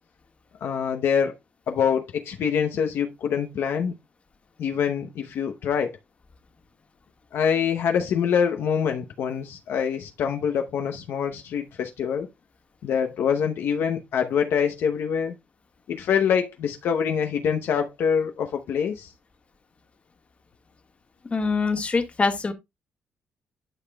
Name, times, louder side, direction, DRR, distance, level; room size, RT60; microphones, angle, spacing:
voice 1, 0.6-1.3 1.7-3.9 4.6-6.0 7.3-12.3 12.8-15.4 15.9-19.1, left 7 dB, 75° left, 0.8 m, -25 dB
voice 2, 21.3-22.5, left 4 dB, 30° left, 1.5 m, -24 dB
12.0 x 4.9 x 2.3 m
cardioid pair, 75°, 4 cm